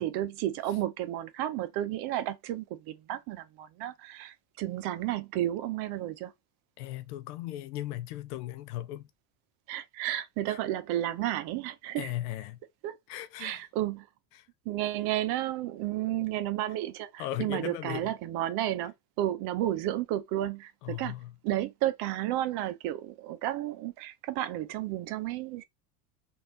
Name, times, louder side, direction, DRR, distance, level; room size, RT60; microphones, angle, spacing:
voice 1, 0.0-6.3 9.7-12.1 12.8-13.0 13.4-14.0 14.7-21.1 21.4-25.7, right 13 dB, 55° right, 0.7 m, -32 dB
voice 2, 6.8-9.1 10.5-10.6 12.0-12.6 13.1-13.6 14.3-14.5 17.2-18.1 20.8-21.3, left 14 dB, 75° left, 0.7 m, -37 dB
3.2 x 2.6 x 2.7 m
hypercardioid pair, 90°, 46 cm